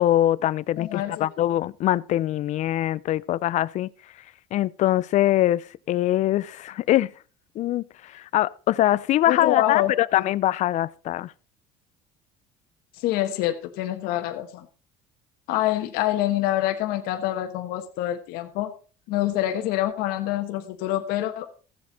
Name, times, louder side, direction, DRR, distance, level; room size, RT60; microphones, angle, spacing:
voice 1, 0.0-3.9 4.5-7.1 7.6-11.3, left 13 dB, 50° left, 0.5 m, -23 dB
voice 2, 0.8-1.2 9.3-10.2 13.0-14.7 15.5-18.7 19.1-21.5, left 14 dB, 75° left, 1.3 m, -26 dB
15.0 x 7.5 x 4.0 m
cardioid pair, 130°, 16 cm